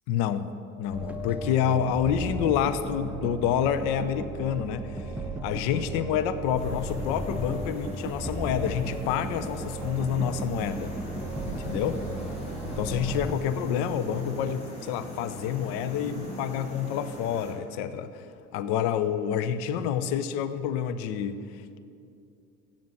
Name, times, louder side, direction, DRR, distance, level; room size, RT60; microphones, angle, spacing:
voice 1, 0.1-0.5 0.8-5.1 5.4-10.9 11.5-12.0 12.6-18.3 18.5-21.8, left 8 dB, 60° left, 11 dB, 0.6 m, -28 dB
sound 1, 0.9-13.4, right 1 dB, 5° right, 0.5 m, -35 dB
sound 2, 6.5-17.6, left 1 dB, 85° left, 2.4 m, -41 dB
7.2 x 7.2 x 7.5 m, 2.6 s
hypercardioid pair, 70°, 45 cm